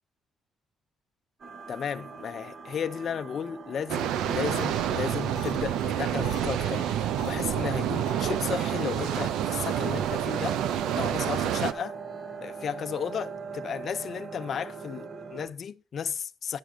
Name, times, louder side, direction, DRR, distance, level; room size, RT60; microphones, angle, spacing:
sound 1, 1.4-15.5, right 5 dB, 45° right, 1.5 m, -41 dB
voice 1, 1.7-10.6 10.9-12.0 12.4-16.6, left 7 dB, 55° left, 0.6 m, -34 dB
sound 2, 3.9-11.7, right 11 dB, 90° right, 0.6 m, -28 dB
sound 3, 4.5-4.6 4.9-5.0 5.3-7.4 7.6-7.8 8.1-8.3 8.6-8.7 9.0-9.1 9.4-9.5 9.9-10.0 10.3-10.4 10.7-10.8, left 10 dB, 75° left, 1.1 m, -43 dB
10.0 x 6.4 x 4.9 m
cardioid pair, 90°, 0 cm